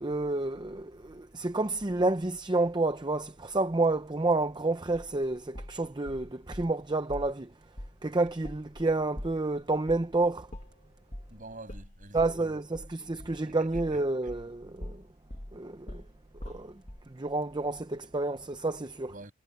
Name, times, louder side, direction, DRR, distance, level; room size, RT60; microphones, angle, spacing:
voice 1, 0.0-7.5 8.0-10.5 12.1-15.0 15.5-16.0 16.4-16.7 17.1-19.1, right 2 dB, 20° right, 0.6 m, -29 dB
sound 1, 4.9-6.7 7.1-7.4 7.8-8.0 8.3-14.5 14.8-17.1, equal, 30° left, 1.9 m, -43 dB
voice 2, 11.3-12.6 13.3-14.0 19.1-19.3, right 2 dB, 40° right, 7.2 m, -48 dB
head